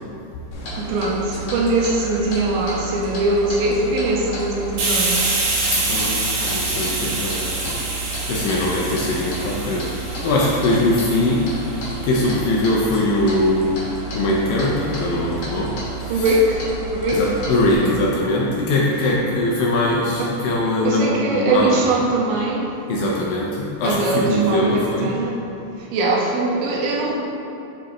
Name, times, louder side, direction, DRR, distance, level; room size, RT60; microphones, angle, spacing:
Clock, 0.5-17.8, right 3 dB, 60° left, 2.2 m, -31 dB
voice 1, 0.8-5.2 16.1-16.6 16.9-17.3 17.7-18.0 20.2-20.3 20.8-22.7 23.8-25.4 25.9-27.1, right 2 dB, 85° right, -2 dB, 2.6 m, -21 dB
Hiss, 4.8-12.2, right 2 dB, 65° right, 2.0 m, -26 dB
voice 2, 5.7-7.8 8.3-13.9 14.1-16.2 17.1-21.8 22.9-25.1, left 1 dB, 80° left, -4 dB, 2.1 m, -21 dB
7.7 x 5.0 x 3.0 m, 2.7 s
omnidirectional pair, 4.5 m